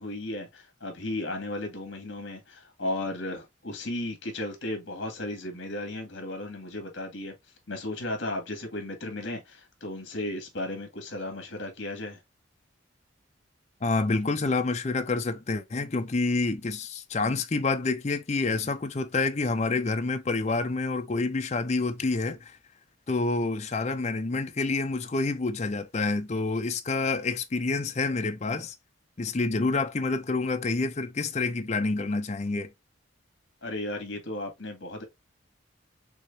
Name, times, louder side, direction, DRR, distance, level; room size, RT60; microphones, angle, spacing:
voice 1, 0.0-7.4 7.7-12.2 33.6-35.0, left 1 dB, 60° left, 2.0 m, -35 dB
voice 2, 13.8-22.5 23.1-28.7 29.2-32.7, left 3 dB, 35° left, 0.5 m, -28 dB
6.3 x 2.9 x 2.7 m
head